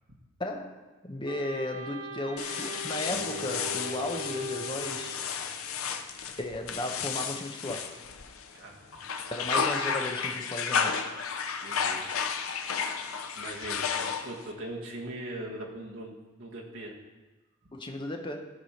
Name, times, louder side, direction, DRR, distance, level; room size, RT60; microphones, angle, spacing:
voice 1, 0.4-5.2 6.4-7.9 9.3-11.1 17.7-18.4, left 1 dB, 20° left, 3 dB, 0.9 m, -35 dB
Wind instrument woodwind instrument, 1.2-5.2, equal, 85° right, 1.3 m, -40 dB
sound 1, 2.4-8.5 8.9-14.5, left 6 dB, 75° left, 0.7 m, -32 dB
sound 2, 3.1-6.3, right 2 dB, 10° right, 1.7 m, -48 dB
voice 2, 8.5-8.9 11.6-12.2 13.3-16.9 17.6-17.7, right 1 dB, 60° right, -2 dB, 1.7 m, -40 dB
14.0 x 4.8 x 5.8 m, 1.2 s
head